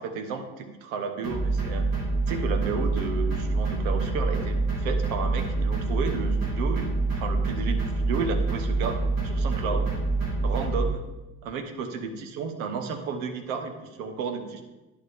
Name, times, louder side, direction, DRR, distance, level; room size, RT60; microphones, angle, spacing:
voice 1, 0.0-1.9 2.3-9.0 9.2-9.9 10.4-11.0 11.4-14.6, right 5 dB, 80° right, 7 dB, 0.9 m, -32 dB
sound 1, 1.2-10.9, right 3 dB, 60° right, 2.9 m, -26 dB
10.5 x 4.8 x 3.5 m, 1.1 s
hypercardioid pair, 45°, 41 cm